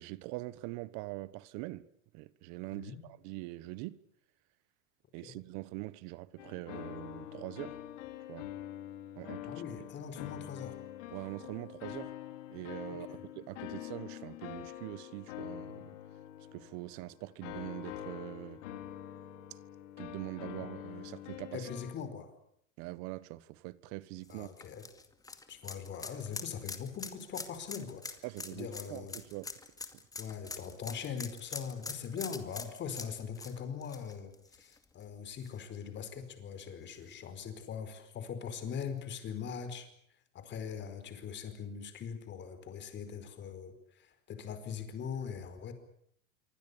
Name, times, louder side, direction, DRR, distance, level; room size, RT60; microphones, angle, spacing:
voice 1, 0.0-1.9 2.1-4.0 5.1-7.8 8.3-8.5 9.2-9.5 11.1-12.1 12.5-16.0 16.5-18.6 20.0-21.7 22.8-24.5 28.2-29.5, right 19 dB, 45° right, 1.3 m, -43 dB
voice 2, 2.7-3.1 5.2-5.3 9.4-10.7 12.9-13.2 20.6-20.7 21.5-22.3 24.3-24.9 25.5-28.1 28.5-29.2 30.2-39.9 40.3-45.7, left 7 dB, 25° left, 4.8 m, -41 dB
sound 1, 6.4-22.0, left 12 dB, 65° left, 3.6 m, -45 dB
sound 2, 24.2-35.0 35.4-35.5 37.0-37.1, left 3 dB, 10° left, 2.2 m, -44 dB
26.5 x 24.5 x 7.1 m
supercardioid pair, 145°, 40 cm